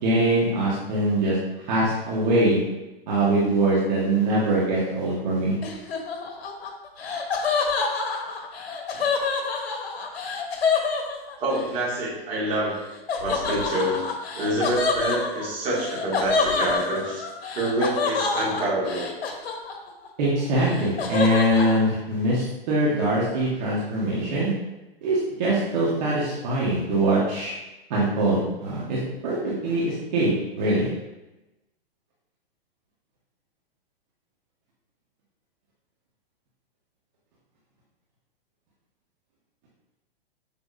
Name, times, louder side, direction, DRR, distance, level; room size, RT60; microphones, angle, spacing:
voice 1, 0.0-1.4 1.6-2.6 3.1-5.6 20.2-24.5 25.0-27.5 27.9-30.3 30.6-30.9, right 1 dB, 45° right, -7 dB, 1.7 m, -23 dB
Laughter, 5.6-11.7 13.1-20.1 20.4-21.8, left 4 dB, 80° left, 1.4 m, -27 dB
voice 2, 11.4-12.8 13.2-14.0 14.3-17.2 17.5-19.1, right 1 dB, 25° right, -7 dB, 2.2 m, -26 dB
7.2 x 5.7 x 2.7 m, 1.0 s
hypercardioid pair, 160°, 31 cm